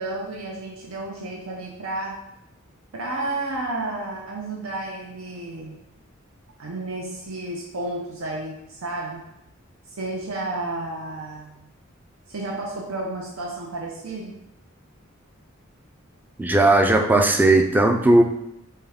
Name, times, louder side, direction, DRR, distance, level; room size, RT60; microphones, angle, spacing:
voice 1, 0.0-2.3 2.9-5.8 6.6-9.3 9.9-11.6 12.3-14.4, right 2 dB, 80° right, -1 dB, 0.6 m, -32 dB
voice 2, 16.4-18.2, right 2 dB, 10° right, 4 dB, 0.3 m, -17 dB
5.5 x 2.3 x 3.5 m, 0.84 s
head